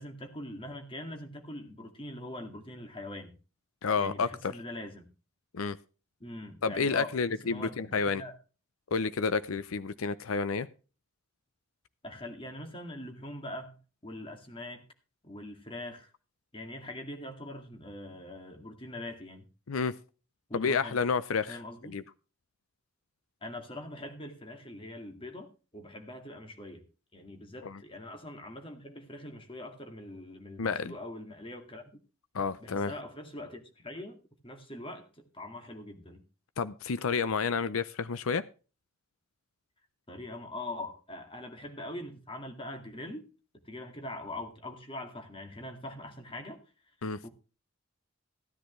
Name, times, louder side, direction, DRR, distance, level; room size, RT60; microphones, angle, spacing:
voice 1, 0.0-3.4 4.0-5.1 6.2-7.1 7.4-8.3 12.0-13.8 14.0-14.8 15.2-16.1 16.5-19.4 20.5-21.0 21.5-22.0 23.4-26.8 27.1-32.0 32.6-34.2 34.4-36.2 40.1-43.3 43.7-46.6 47.2-47.3, left 1 dB, 25° left, 2.1 m, -43 dB
voice 2, 3.8-4.5 5.5-5.8 6.6-8.2 8.9-10.7 19.7-20.0 20.5-21.6 21.8-22.0 27.6-27.8 30.6-30.9 32.3-32.9 36.6-38.4 47.0-47.2, left 5 dB, 85° left, 0.6 m, -30 dB
15.5 x 10.5 x 3.1 m
head